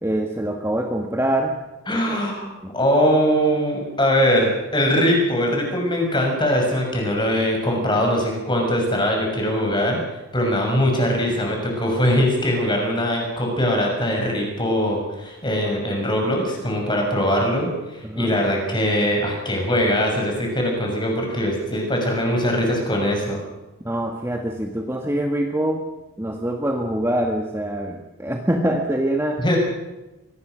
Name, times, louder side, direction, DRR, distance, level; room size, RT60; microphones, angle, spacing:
voice 1, 0.0-1.5 1.9-2.2 2.6-2.7 18.0-18.3 23.8-25.8 26.2-29.4, right 1 dB, 10° right, 3 dB, 1.6 m, -24 dB
voice 2, 1.9-2.5 2.7-10.0 10.3-23.4 29.4-29.6, equal, 20° left, 1 dB, 6.5 m, -21 dB
24.5 x 19.5 x 6.3 m, 1.1 s
head